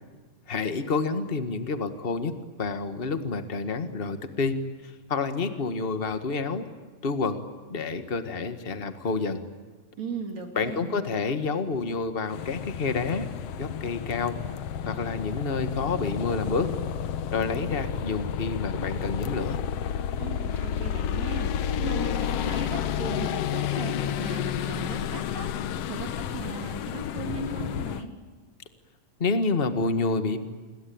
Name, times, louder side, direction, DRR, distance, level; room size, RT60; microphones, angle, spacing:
voice 1, 0.5-2.3 2.6-4.6 4.8-6.7 7.0-9.4 10.5-13.3 13.6-14.4 14.9-16.7 17.3-19.6 29.2-30.4, left 4 dB, 40° left, 9 dB, 0.8 m, -28 dB
voice 2, 10.0-11.0 20.2-21.5 21.8-28.1, right 4 dB, 50° right, 5 dB, 4.3 m, -37 dB
sound 1, 12.3-28.0, left 9 dB, 70° left, 1.5 m, -31 dB
28.5 x 22.0 x 8.8 m, 1.4 s
omnidirectional pair, 4.0 m